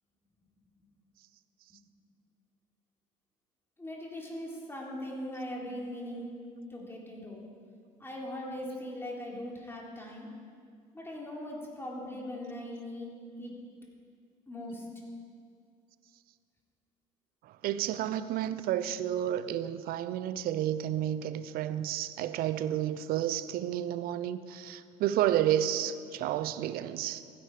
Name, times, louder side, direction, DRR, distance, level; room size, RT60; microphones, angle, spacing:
voice 1, 3.8-6.4 6.7-7.5 8.0-10.3 10.9-13.6 14.5-14.9, left 1 dB, 15° left, -3 dB, 3.9 m, -40 dB
voice 2, 17.6-27.2, right 11 dB, 60° right, 13 dB, 0.7 m, -31 dB
15.0 x 10.5 x 5.0 m, 2.2 s
hypercardioid pair, 70°, 17 cm